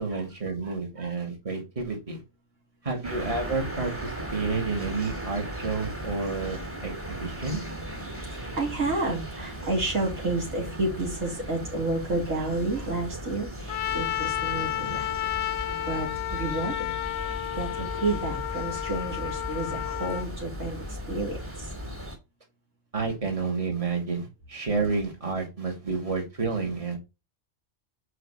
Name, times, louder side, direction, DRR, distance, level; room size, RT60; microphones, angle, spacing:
voice 1, 0.0-2.2 2.8-7.6 22.9-27.0, right 4 dB, 25° right, 2 dB, 2.3 m, -30 dB
voice 2, 0.6-1.2 8.3-15.3 15.9-16.9 17.5-21.7, right 2 dB, 85° right, -1 dB, 3.5 m, -31 dB
sound 1, 3.0-22.2, equal, 10° right, 2.6 m, -37 dB
Trumpet, 13.7-20.3, left 14 dB, 65° left, 0.8 m, -32 dB
7.6 x 5.0 x 4.2 m, 0.25 s
omnidirectional pair, 1.3 m